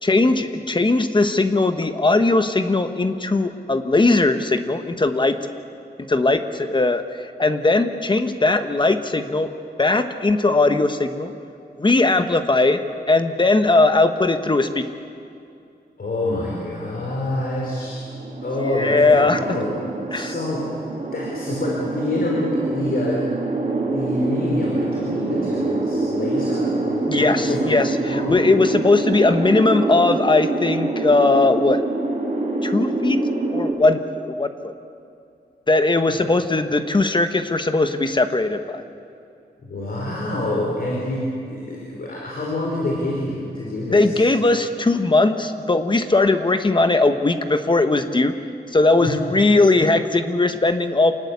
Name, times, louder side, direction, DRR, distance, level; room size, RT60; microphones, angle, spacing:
voice 1, 0.0-5.4 6.1-9.5 9.8-11.3 11.8-14.9 18.7-19.4 20.1-20.3 27.1-31.8 32.6-34.7 35.7-38.8 43.9-48.4 48.7-51.1, left 2 dB, 25° left, 8 dB, 1.3 m, -19 dB
voice 2, 16.0-18.0 18.4-20.8 21.1-23.2 23.8-27.8 28.1-29.1 39.6-44.2 49.0-49.2, left 1 dB, 60° left, -3 dB, 4.9 m, -27 dB
sound 1, 17.8-33.7, right 2 dB, 45° right, 4.4 m, -25 dB
28.0 x 20.0 x 8.3 m, 2.5 s
wide cardioid pair, 145°, 17 cm